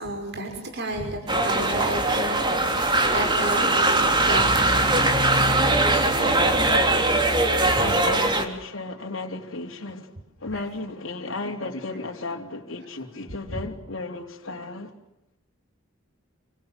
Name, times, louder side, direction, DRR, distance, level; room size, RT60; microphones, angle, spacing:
voice 1, 0.0-5.8 6.3-6.6 7.3-7.4 7.8-7.9 10.5-10.6 13.5-13.6, right 1 dB, 55° right, 5.8 m, -32 dB
sound 1, 1.3-8.4, right 2 dB, 25° right, 3.6 m, -21 dB
voice 2, 7.8-10.1 10.4-14.9, left 2 dB, 70° left, 3.4 m, -34 dB
28.5 x 27.0 x 7.6 m
head